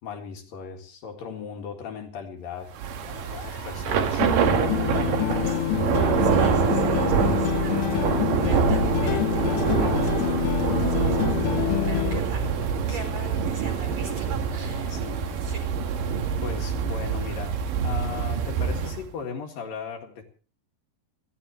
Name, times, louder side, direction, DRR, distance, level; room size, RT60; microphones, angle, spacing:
voice 1, 0.0-2.7 3.3-4.3 6.3-6.6 12.9-13.3 14.9-15.3 16.4-20.2, left 6 dB, 60° left, 2 dB, 3.3 m, -37 dB
Thunder / Rain, 2.7-19.0, right 7 dB, 60° right, 2.7 m, -25 dB
sound 1, 3.1-17.4, left 4 dB, 40° left, 1.6 m, -47 dB
sound 2, 4.2-12.2, left 15 dB, 85° left, 3.0 m, -26 dB
voice 2, 5.5-5.8 6.2-12.6 12.9-15.6, right 3 dB, 40° right, 4 dB, 5.1 m, -43 dB
30.0 x 12.0 x 3.1 m, 0.39 s
omnidirectional pair, 5.0 m